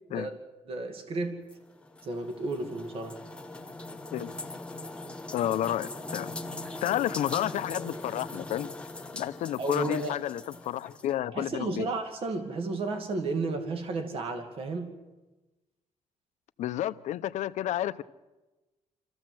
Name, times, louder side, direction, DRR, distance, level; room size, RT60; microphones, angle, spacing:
voice 1, 0.7-1.4 2.0-3.2 9.6-10.2 11.3-15.0, right 3 dB, 50° right, 5 dB, 2.2 m, -33 dB
sound 1, 1.5-11.1, left 2 dB, 10° left, 0.9 m, -41 dB
voice 2, 5.3-6.3 6.8-8.7 9.1-11.9 16.6-18.0, left 12 dB, 75° left, 13 dB, 0.7 m, -31 dB
26.5 x 14.5 x 7.7 m, 1.1 s
cardioid pair, 165°, 12 cm